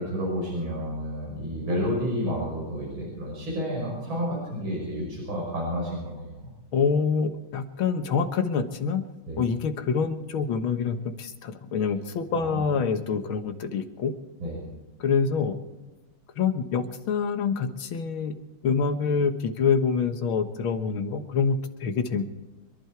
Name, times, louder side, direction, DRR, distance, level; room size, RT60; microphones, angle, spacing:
voice 1, 0.0-6.5 9.3-9.5 12.3-12.6 14.4-14.6, equal, 70° right, -4 dB, 6.3 m, -30 dB
voice 2, 6.7-9.0 9.4-14.1 15.0-15.6 16.4-18.3 18.6-22.2, left 5 dB, 75° left, 8 dB, 2.1 m, -26 dB
27.5 x 11.5 x 4.7 m, 1.1 s
omnidirectional pair, 2.3 m